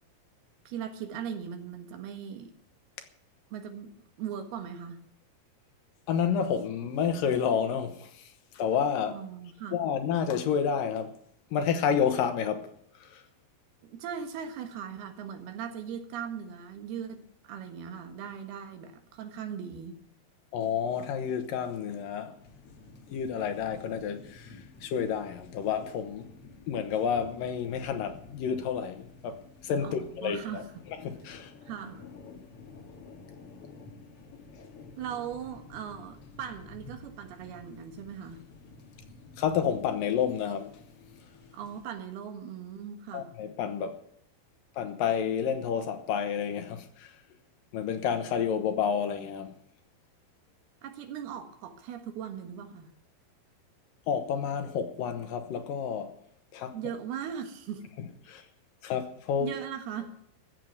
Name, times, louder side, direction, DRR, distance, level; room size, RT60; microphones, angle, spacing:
voice 1, 0.7-2.5 3.5-5.1 9.1-9.8 13.8-20.0 29.8-30.7 31.7-32.1 35.0-38.4 41.5-43.3 50.8-52.9 56.7-57.9 59.4-60.2, right 8 dB, 85° right, 3.5 m, -39 dB
voice 2, 6.1-9.2 9.7-11.2 11.5-12.7 13.0-13.2 20.5-22.3 23.1-26.3 26.7-29.4 29.6-30.6 31.0-31.5 39.4-40.8 43.1-44.0 44.8-47.1 47.7-49.5 54.1-56.1 56.5-56.8 58.3-58.4 58.8-59.5, left 7 dB, 70° left, 2.7 m, -30 dB
sound 1, 22.4-41.9, left 3 dB, 45° left, 2.3 m, -51 dB
14.0 x 7.7 x 9.4 m
omnidirectional pair, 4.4 m